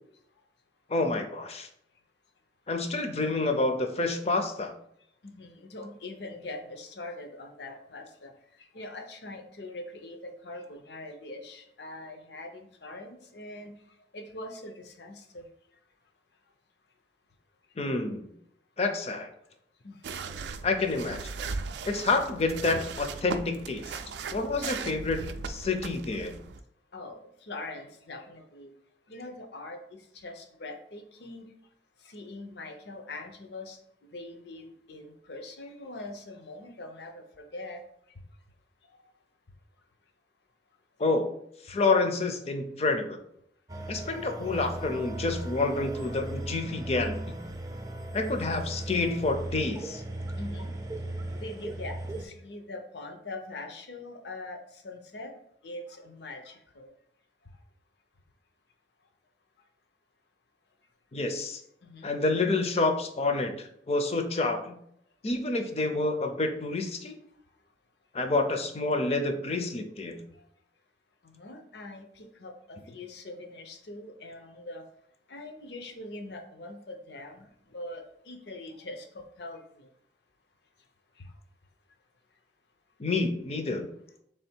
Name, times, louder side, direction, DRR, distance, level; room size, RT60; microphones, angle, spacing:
voice 1, 0.9-1.7 2.7-4.7 17.8-18.3 18.8-19.3 20.6-21.2 21.8-24.0 24.3-25.2 25.5-26.3 41.0-41.3 41.6-43.2 43.9-47.4 48.1-50.0 61.1-61.6 62.0-64.7 65.2-67.2 68.1-70.2 83.0-83.9, left 3 dB, 35° left, 6 dB, 0.5 m, -28 dB
voice 2, 5.2-8.3 8.6-13.7 14.1-15.5 19.8-20.0 26.9-28.7 29.1-31.5 32.0-33.8 34.1-37.8 50.2-50.7 51.3-55.3 55.6-56.9 61.8-62.1 71.2-74.8 75.3-77.5 77.7-79.9 81.2-81.3, left 2 dB, 75° left, 5 dB, 0.7 m, -43 dB
sound 1, 20.0-26.6, right 4 dB, 80° right, 0.4 m, -38 dB
sound 2, 43.7-52.2, right 1 dB, 20° right, 0.4 m, -37 dB
3.5 x 3.4 x 4.4 m, 0.72 s
head